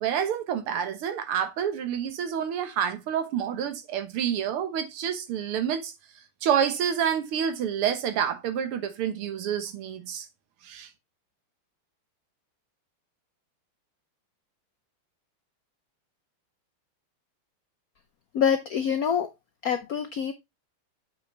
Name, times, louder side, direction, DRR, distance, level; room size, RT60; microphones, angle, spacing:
voice 1, 0.0-5.9 6.4-10.3 10.6-10.9, right 8 dB, 80° right, 2.0 m, -28 dB
voice 2, 18.3-19.3 19.6-20.3, left 7 dB, 85° left, 0.8 m, -25 dB
7.5 x 5.8 x 3.2 m
omnidirectional pair, 2.4 m